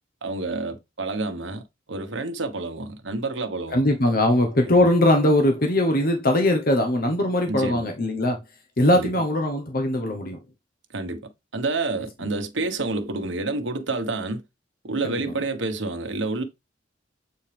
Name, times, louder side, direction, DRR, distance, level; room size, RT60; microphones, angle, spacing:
voice 1, 0.2-1.6 1.9-3.9 4.6-4.7 7.5-7.9 8.9-9.1 10.9-11.2 11.5-14.4 14.8-16.4, right 3 dB, 85° right, 1.3 m, -29 dB
voice 2, 3.7-8.4 8.8-10.4 15.0-15.2, left 1 dB, 50° left, 1.2 m, -21 dB
8.1 x 4.5 x 3.5 m
head